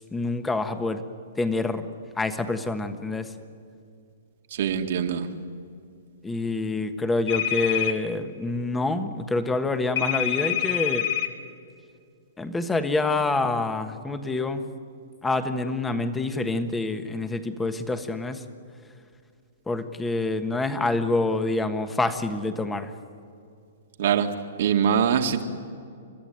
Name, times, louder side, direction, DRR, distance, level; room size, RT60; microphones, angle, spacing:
voice 1, 0.1-1.0 1.4-1.9 2.2-3.3 6.2-11.1 12.4-14.6 15.2-18.4 19.7-22.9, left 2 dB, 10° left, 9 dB, 1.3 m, -27 dB
voice 2, 4.5-5.3 24.0-24.3 24.6-25.4, right 8 dB, 65° right, 4 dB, 2.1 m, -23 dB
sound 1, 7.3-7.9 10.0-11.3, left 12 dB, 65° left, 3.2 m, -26 dB
29.5 x 13.5 x 9.4 m, 2.4 s
hypercardioid pair, 150°, 0 cm